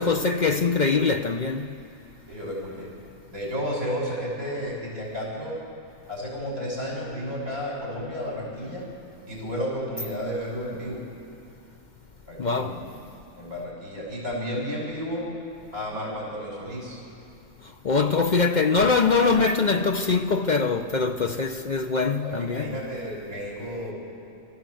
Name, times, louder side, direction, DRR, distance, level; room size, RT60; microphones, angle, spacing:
voice 1, 0.0-1.8 12.4-12.9 17.6-22.8, left 4 dB, 50° left, 0.5 m, -23 dB
voice 2, 2.3-2.9 3.3-5.6 6.1-8.9 9.3-11.0 12.3-12.9 13.4-15.3 15.7-17.0 22.2-23.9, equal, 65° right, 7.2 m, -32 dB
26.5 x 14.5 x 7.8 m
omnidirectional pair, 1.6 m